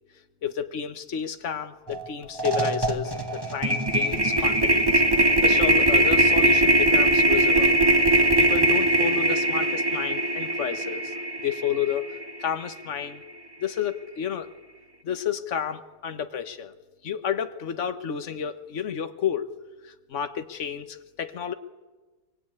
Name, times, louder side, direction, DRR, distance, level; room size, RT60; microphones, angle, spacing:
voice 1, 0.4-7.8 8.4-12.1 12.4-13.2 13.6-14.5 15.0-16.7 17.0-19.5 19.8-21.5, left 8 dB, 40° left, 9 dB, 1.5 m, -31 dB
sound 1, 1.9-2.1 2.4-12.6, right 1 dB, 10° right, 1.5 m, -21 dB
24.5 x 24.0 x 9.9 m, 1.2 s
omnidirectional pair, 2.4 m